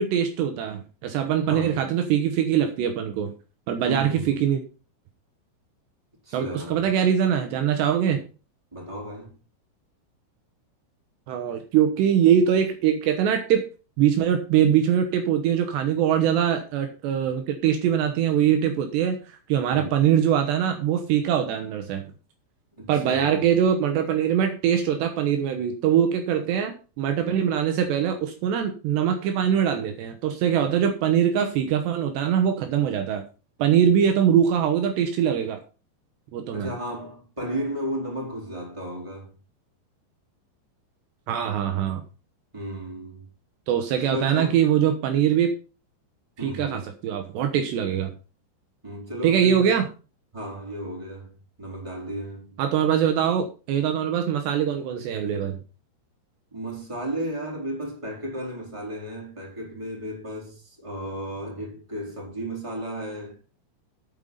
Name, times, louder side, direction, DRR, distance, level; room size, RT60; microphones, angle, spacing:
voice 1, 0.0-3.3 3.7-4.6 6.3-8.2 11.3-13.6 14.0-22.0 22.9-33.2 33.6-35.6 36.3-36.7 41.3-42.0 43.7-45.5 46.4-48.1 49.2-49.9 52.6-55.6, right 9 dB, 75° right, 3.2 m, -22 dB
voice 2, 1.4-1.8 3.8-4.4 6.2-6.9 8.7-9.4 19.7-20.0 22.7-23.5 36.5-39.3 42.5-43.3 44.1-44.6 46.4-46.9 48.8-49.8 50.3-52.6 56.5-63.4, right 1 dB, 5° right, 3.7 m, -34 dB
9.0 x 8.2 x 5.5 m
omnidirectional pair, 5.2 m